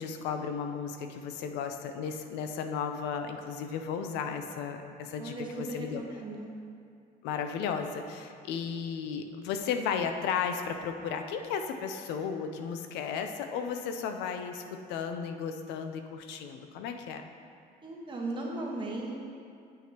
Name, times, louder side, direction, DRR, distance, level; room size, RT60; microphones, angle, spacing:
voice 1, 0.0-6.0 7.2-17.2, left 6 dB, 90° left, 6 dB, 0.5 m, -34 dB
voice 2, 5.2-6.5 17.8-19.1, right 2 dB, 30° right, -2 dB, 1.3 m, -37 dB
7.8 x 7.3 x 2.9 m, 2.4 s
cardioid pair, 110°, 17 cm